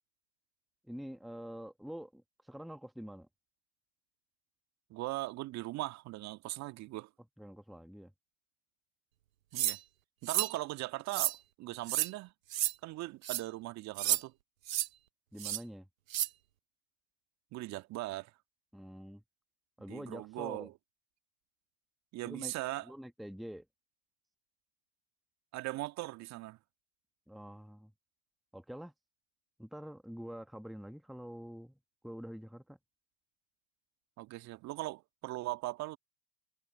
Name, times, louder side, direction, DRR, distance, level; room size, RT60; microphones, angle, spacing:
voice 1, 0.9-3.3 7.4-8.1 15.3-15.9 18.7-19.2 19.8-20.7 22.2-22.5 22.8-23.7 27.3-27.9 28.5-28.9 29.6-31.7 32.0-32.8, equal, ahead, 1.2 m, -46 dB
voice 2, 4.9-7.1 9.5-9.8 10.2-12.3 12.8-14.3 17.5-18.3 19.9-20.7 22.1-22.9 25.5-26.6 34.2-36.0, right 18 dB, 40° right, 1.7 m, -39 dB
sound 1, 9.6-9.8 10.3-10.5 11.1-11.4 11.9-12.1 12.5-12.7 13.2-13.4 14.0-14.2 14.7-14.9 15.4-15.6 16.1-16.3, right 13 dB, 75° right, 0.8 m, -31 dB
hypercardioid pair, 90°, 41 cm